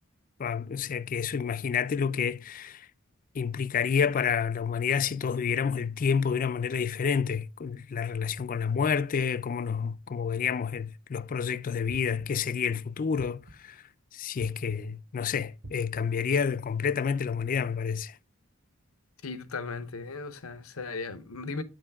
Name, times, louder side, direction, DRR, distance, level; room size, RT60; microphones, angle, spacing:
voice 1, 0.4-2.9 3.4-13.8 14.1-18.1, left 6 dB, 40° left, 0.4 m, -29 dB
sound 1, 11.9-12.5 13.2-13.8 14.4-15.0 15.6-16.3, right 1 dB, 50° right, 1.1 m, -47 dB
voice 2, 19.2-21.6, left 4 dB, 85° left, 0.9 m, -37 dB
9.1 x 5.2 x 3.5 m
head